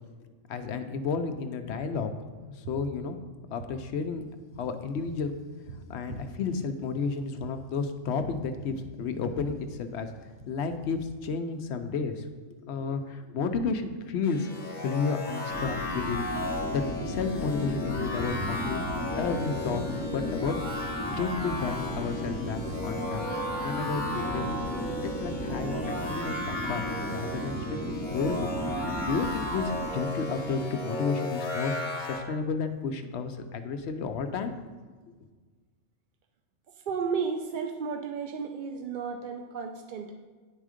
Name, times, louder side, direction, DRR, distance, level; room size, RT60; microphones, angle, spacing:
voice 1, 0.5-2.1 2.6-3.2 3.5-4.2 4.6-5.3 5.9-10.1 10.5-12.2 12.6-14.5 14.8-19.8 20.1-23.3 23.6-24.5 25.0-27.8 28.1-28.5 28.7-34.5, left 5 dB, 65° left, 8 dB, 0.8 m, -32 dB
sound 1, 14.2-32.2, left 1 dB, 40° left, 1.2 m, -35 dB
sound 2, 15.5-29.9, equal, 20° right, 0.9 m, -35 dB
sound 3, 22.9-26.7, right 4 dB, 90° right, 1.2 m, -43 dB
voice 2, 36.9-40.1, right 5 dB, 65° right, 5 dB, 0.5 m, -33 dB
9.6 x 3.6 x 4.9 m, 1.4 s
omnidirectional pair, 1.4 m